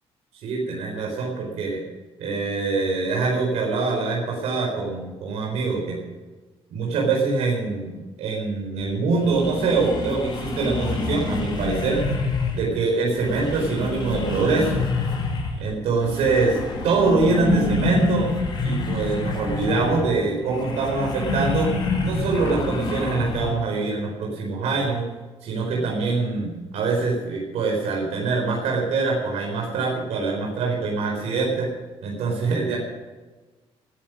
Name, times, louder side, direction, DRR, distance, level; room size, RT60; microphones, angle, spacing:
voice 1, 0.4-1.8 2.2-6.0 6.7-12.1 12.5-14.8 15.6-16.6 16.8-18.3 18.6-21.7 22.0-25.1 25.4-31.7 32.0-32.8, right 4 dB, 90° right, -1 dB, 4.4 m, -24 dB
sound 1, 8.8-8.9 9.2-12.7 13.1-15.7 16.0-23.5, left 3 dB, 40° left, 5.1 m, -27 dB
19.0 x 10.5 x 6.2 m, 1.3 s
cardioid pair, 125°, 11 cm